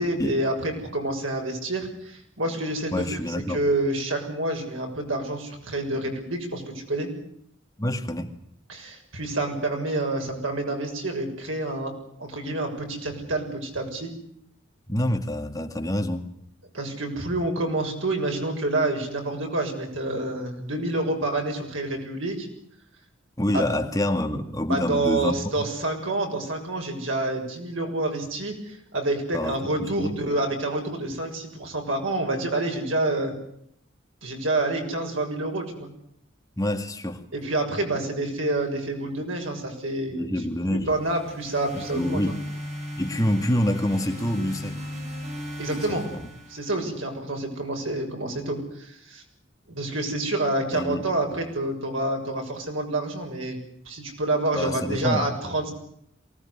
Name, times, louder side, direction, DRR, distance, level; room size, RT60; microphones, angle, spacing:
voice 1, 0.0-3.2 3.5-7.1 8.7-11.9 12.2-14.1 16.7-22.5 23.5-23.7 24.7-33.3 34.2-35.9 37.3-40.3 40.7-42.3 45.6-46.1 46.5-49.2 49.7-53.6 53.8-55.7, right 2 dB, 80° right, 3 dB, 6.8 m, -28 dB
voice 2, 2.9-3.6 7.8-8.3 14.9-16.3 23.4-25.7 29.3-30.2 36.6-37.2 40.1-40.9 41.9-42.4 43.0-44.9 45.8-45.9 46.1-46.2 50.7-51.1 54.5-55.3, left 1 dB, 15° left, 5 dB, 2.0 m, -27 dB
sound 1, 40.9-47.1, equal, 35° right, 6.6 m, -37 dB
23.5 x 19.0 x 9.8 m, 0.71 s
head